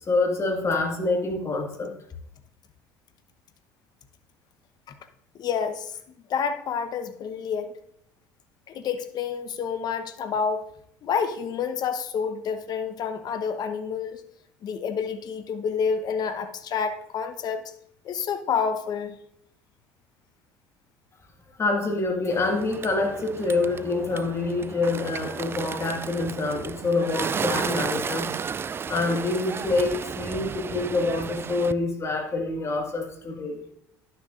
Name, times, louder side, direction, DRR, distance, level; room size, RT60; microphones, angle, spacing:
voice 1, 0.0-1.9 21.6-28.3 28.9-33.6, left 3 dB, 30° left, 3 dB, 1.9 m, -26 dB
voice 2, 5.4-5.9 6.3-7.7 8.7-10.6 11.0-14.2 14.6-17.6 18.0-19.1, left 6 dB, 50° left, 9 dB, 1.0 m, -28 dB
Bird, 22.3-31.7, right 6 dB, 25° right, 0.3 m, -33 dB
11.5 x 6.8 x 2.5 m, 0.75 s
hypercardioid pair, 75°, 9 cm